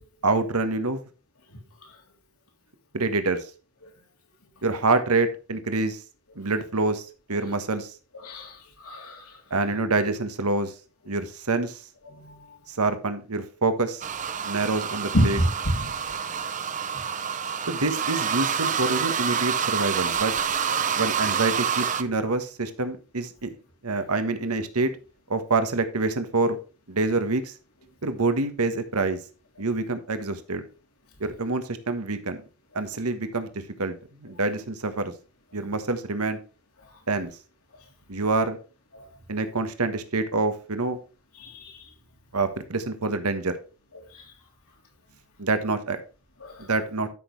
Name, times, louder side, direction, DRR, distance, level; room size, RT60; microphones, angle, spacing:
voice 1, 0.2-1.0 2.9-3.5 4.6-6.0 6.3-7.9 9.5-10.7 11.1-11.8 12.7-14.0 14.4-15.4 17.7-20.3 20.9-23.5 23.8-24.9 25.3-26.6 26.9-27.5 28.0-29.2 29.6-30.6 31.2-32.4 32.7-33.5 33.8-35.1 35.5-36.4 37.1-37.3 38.1-38.6 39.3-41.0 42.3-43.6 45.4-46.0 46.6-47.1, right 3 dB, 90° right, 1.4 m, -26 dB
voice 2, 8.8-9.2 12.2-12.3 15.1-15.5 15.7-16.1 41.4-41.7 46.4-46.6, equal, 80° left, 3.5 m, -26 dB
sound 1, 14.0-22.0, right 7 dB, 35° right, 0.7 m, -27 dB
12.5 x 6.4 x 3.3 m
head